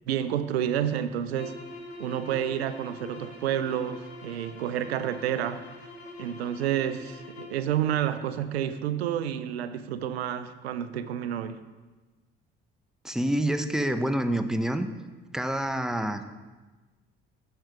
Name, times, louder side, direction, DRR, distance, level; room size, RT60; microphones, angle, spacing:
voice 1, 0.1-1.5 2.0-5.6 6.2-11.6, right 10 dB, 80° right, 12 dB, 0.5 m, -29 dB
sound 1, 1.3-7.7, left 2 dB, 80° left, 1.5 m, -44 dB
voice 2, 13.0-14.9 15.3-16.3, right 1 dB, ahead, 9 dB, 0.7 m, -27 dB
8.9 x 6.5 x 5.8 m, 1.2 s
figure-of-eight pair, 50°, 31 cm